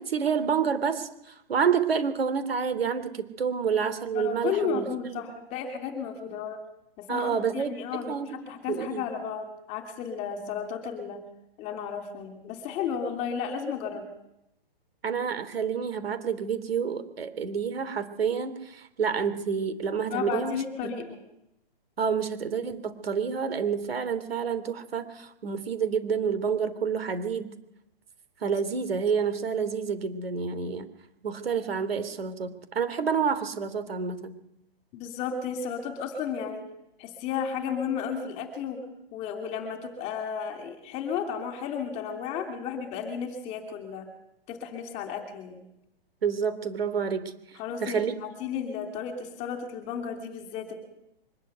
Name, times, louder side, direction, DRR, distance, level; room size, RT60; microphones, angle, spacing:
voice 1, 0.0-5.3 7.1-7.7 8.1-8.3 8.7-9.0 10.4-10.5 15.0-20.6 22.0-27.5 28.4-30.9 31.2-34.4 46.2-47.3 47.8-48.2, right 6 dB, 85° right, 12 dB, 3.0 m, -28 dB
voice 2, 4.1-6.6 7.0-11.2 11.6-14.1 20.1-21.2 34.9-36.7 37.0-38.8 39.1-44.1 44.5-45.6 47.6-50.7, left 7 dB, 20° left, 6 dB, 3.1 m, -33 dB
23.5 x 13.0 x 9.2 m, 0.81 s
hypercardioid pair, 165°, 29 cm